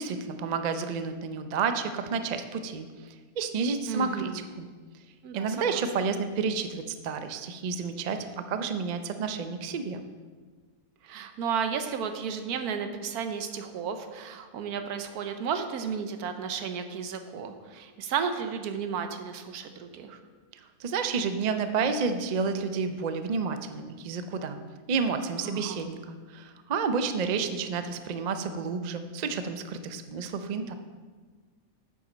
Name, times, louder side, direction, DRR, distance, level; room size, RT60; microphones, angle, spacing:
voice 1, 0.0-4.3 4.6-4.7 5.3-10.0 20.8-24.6 24.9-30.7, right 5 dB, 65° right, 8 dB, 0.4 m, -30 dB
voice 2, 3.9-4.5 5.2-5.8 11.0-20.2 25.4-25.9, right 6 dB, 85° right, 7 dB, 1.3 m, -33 dB
8.4 x 7.2 x 5.1 m, 1.5 s
omnidirectional pair, 1.6 m